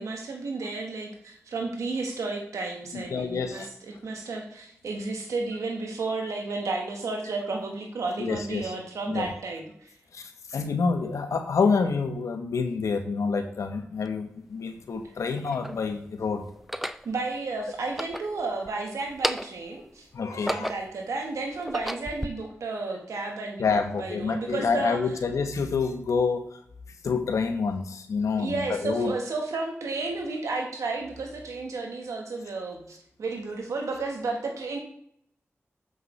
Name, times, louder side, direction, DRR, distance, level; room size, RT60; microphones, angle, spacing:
voice 1, 0.0-3.7 4.0-9.9 17.0-25.0 28.4-34.8, right 3 dB, 85° right, 2 dB, 1.2 m, -32 dB
voice 2, 2.9-3.7 6.2-6.3 8.2-8.7 9.1-9.3 10.1-16.5 20.1-20.7 23.6-26.6 27.0-29.1, left 5 dB, 85° left, 7 dB, 0.8 m, -28 dB
sound 1, 14.1-14.2 15.0-15.8 16.6-17.1 17.8-18.7 19.1-19.7 20.2-21.0 21.5-22.3, equal, 5° right, 0.4 m, -33 dB
7.3 x 5.5 x 3.1 m, 0.70 s
cardioid pair, 40°, 5 cm